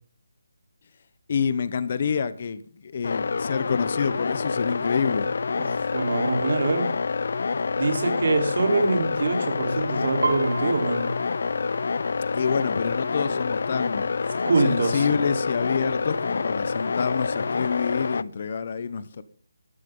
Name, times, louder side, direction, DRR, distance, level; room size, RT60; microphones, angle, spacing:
voice 1, 1.3-5.3 12.3-14.1 14.7-19.2, left 6 dB, 40° left, 1.0 m, -27 dB
sound 1, 3.0-18.2, left 4 dB, 55° left, 0.6 m, -27 dB
voice 2, 5.6-6.9 7.8-11.1 14.4-15.1, right 3 dB, 55° right, 3.9 m, -24 dB
Piano, 10.2-13.9 14.2-14.6 15.0-15.6 16.2-16.3 16.5-17.6 17.9-18.0, right 4 dB, 70° right, 4.0 m, -35 dB
16.5 x 13.0 x 3.9 m
hypercardioid pair, 170°, 0 cm